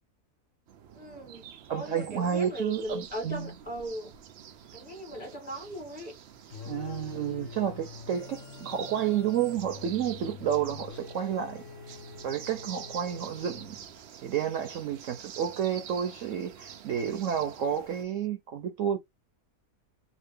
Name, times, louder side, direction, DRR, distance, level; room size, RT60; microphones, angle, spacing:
sound 1, 0.7-18.0, right 9 dB, 90° right, 0.5 m, -47 dB
voice 1, 0.9-4.1 4.7-6.1, equal, 30° left, 1.0 m, -38 dB
voice 2, 1.7-3.5 6.7-11.6 12.2-13.8 14.2-19.0, right 9 dB, 65° right, 0.8 m, -30 dB
sound 2, 6.5-14.0, left 7 dB, 65° left, 0.9 m, -46 dB
2.8 x 2.5 x 3.3 m
omnidirectional pair, 1.6 m